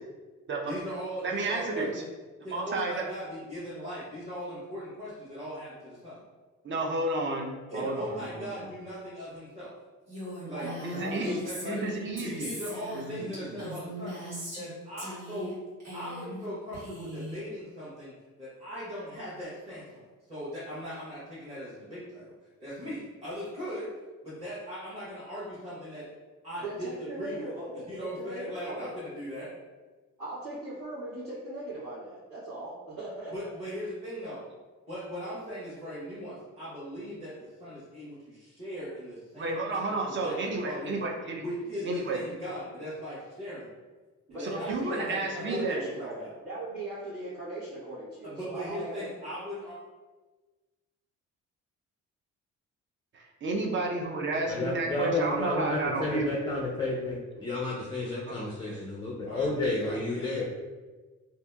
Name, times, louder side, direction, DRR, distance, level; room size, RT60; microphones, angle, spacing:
voice 1, 0.6-2.0 2.4-6.2 7.7-9.7 10.5-10.7 11.2-11.8 12.2-14.2 14.5-15.5 15.9-22.3 22.6-23.9 24.2-26.1 26.4-27.5 27.9-29.5 33.3-34.5 34.9-41.0 41.4-43.7 44.4-46.3 48.2-49.8 59.2-60.3, equal, 20° right, -11 dB, 1.1 m, -39 dB
voice 2, 1.2-1.9 2.5-2.9 6.6-8.5 10.8-11.4 11.6-12.5 13.5-13.6 39.4-41.4 41.8-42.2 44.5-45.8 53.1-56.3 58.3-58.8, right 2 dB, 40° right, 0 dB, 0.5 m, -31 dB
voice 3, 7.7-8.2 10.5-11.4 26.6-29.0 30.2-33.3 44.3-46.2 46.4-49.1, right 1 dB, 75° right, -13 dB, 1.4 m, -39 dB
Female speech woman speaking, 10.1-14.7 15.0-15.5 15.8-16.4 16.7-17.4, equal, 60° right, 1.5 m, -39 dB
voice 4, 54.5-60.5, left 2 dB, 15° left, -3 dB, 0.4 m, -31 dB
2.7 x 2.6 x 2.2 m, 1.3 s
cardioid pair, 90°, 30 cm